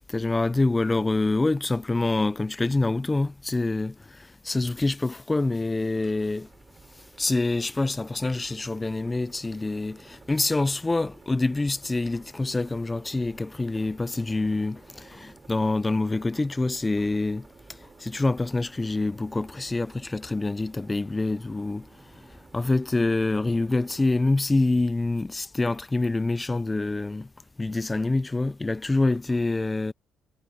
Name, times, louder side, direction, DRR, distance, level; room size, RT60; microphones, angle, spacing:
voice 1, 0.1-6.5 7.2-21.9 22.1-27.3 27.6-29.9, left 2 dB, 15° left, 0.3 m, -26 dB
sound 1, 5.9-24.1, right 4 dB, 25° right, 4.1 m, -53 dB
cardioid pair, 140°, 0 cm